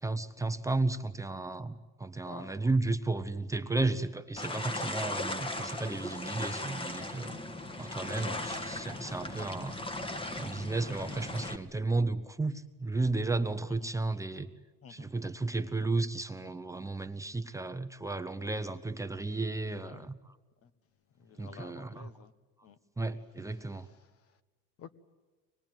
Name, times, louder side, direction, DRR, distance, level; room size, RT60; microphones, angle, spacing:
voice 1, 0.0-7.3 7.8-9.8 10.4-14.5 14.9-20.4 21.4-22.1 23.0-23.9, right 3 dB, 10° right, 0.8 m, -33 dB
voice 2, 2.2-2.7 8.2-8.7 13.8-13.9 14.8-15.1 19.8-20.1 20.6-20.7 21.2-22.3 22.6-22.8 23.6-24.4 24.8-24.9, left 8 dB, 50° left, 1.3 m, -51 dB
sound 1, 4.4-11.6, left 2 dB, 15° left, 1.6 m, -38 dB
24.5 x 20.5 x 9.1 m
cardioid pair, 130°, 30 cm